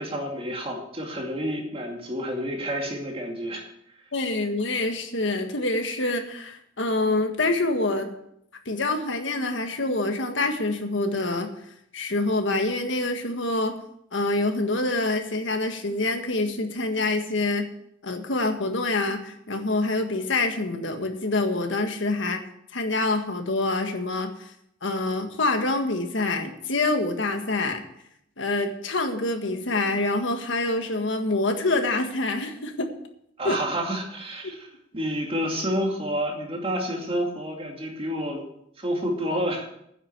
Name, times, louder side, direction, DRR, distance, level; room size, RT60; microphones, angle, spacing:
voice 1, 0.0-3.7 33.4-34.7 34.9-38.4 38.8-39.7, equal, 30° right, 1 dB, 2.5 m, -29 dB
voice 2, 4.1-8.1 8.6-11.5 11.9-13.7 14.1-17.7 18.0-22.4 22.7-24.5 24.8-27.8 28.4-32.9 33.4-33.6, left 2 dB, 70° left, 5 dB, 1.7 m, -26 dB
10.0 x 7.8 x 8.2 m, 0.75 s
head